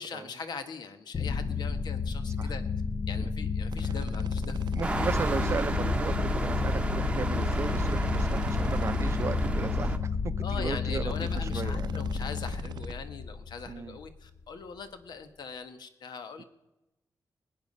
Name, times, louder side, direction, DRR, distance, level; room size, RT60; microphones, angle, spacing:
voice 1, 0.0-2.6 3.1-4.7 10.4-16.4, left 5 dB, 80° left, 9 dB, 1.4 m, -41 dB
sound 1, 1.1-14.0, left 5 dB, 40° left, 0.4 m, -31 dB
sound 2, 3.7-5.6 7.4-9.3 11.0-12.9, right 8 dB, 85° right, 0.6 m, -45 dB
voice 2, 4.7-12.0 13.7-14.0 16.4-16.5, right 5 dB, 40° right, 14 dB, 0.5 m, -36 dB
sound 3, 4.8-10.0, right 2 dB, 15° right, 0.9 m, -31 dB
20.0 x 9.3 x 5.4 m, 0.97 s
wide cardioid pair, 165°, 7 cm